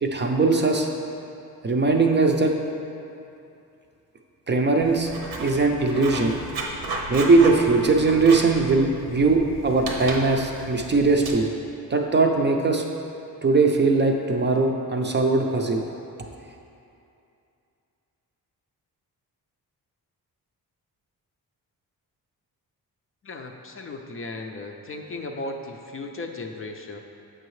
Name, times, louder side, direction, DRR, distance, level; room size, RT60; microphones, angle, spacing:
voice 1, 0.0-0.9 1.6-2.5 4.5-5.1 5.4-6.4 7.1-11.5 11.9-12.8 13.4-15.9, right 3 dB, 30° right, 2 dB, 0.5 m, -20 dB
Writing, 4.8-11.3, right 2 dB, 85° right, 0.9 m, -34 dB
voice 2, 23.2-27.0, left 2 dB, 35° left, 3 dB, 0.4 m, -36 dB
7.6 x 5.5 x 3.1 m, 2.7 s
cardioid pair, 110°, 37 cm